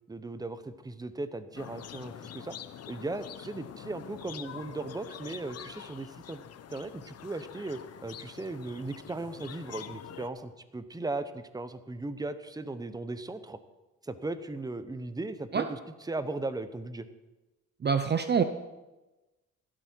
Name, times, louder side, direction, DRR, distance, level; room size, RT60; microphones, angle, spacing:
voice 1, 0.1-2.5 2.9-6.4 6.7-13.6 14.0-17.1, right 2 dB, 10° right, 12 dB, 1.0 m, -37 dB
sound 1, 1.6-10.3, left 9 dB, 55° left, 0.8 m, -46 dB
voice 2, 17.8-18.4, right 6 dB, 35° right, 10 dB, 0.7 m, -25 dB
16.0 x 12.0 x 4.6 m, 1.1 s
cardioid pair, 90°, 30 cm